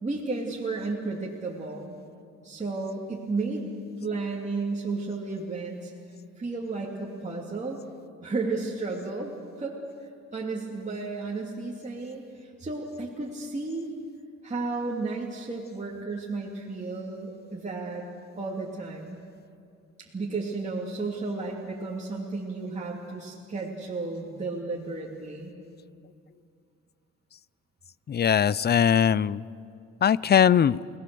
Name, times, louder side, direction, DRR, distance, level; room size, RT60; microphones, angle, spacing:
voice 1, 0.0-1.9 2.4-5.9 6.4-7.8 8.2-13.9 14.4-18.1 18.4-19.2 20.0-25.5, right 3 dB, 25° right, -3 dB, 2.8 m, -33 dB
voice 2, 28.1-29.4 30.0-30.8, left 8 dB, 35° left, 21 dB, 0.5 m, -20 dB
29.5 x 18.0 x 7.0 m, 2.4 s
cardioid pair, 90°, 30 cm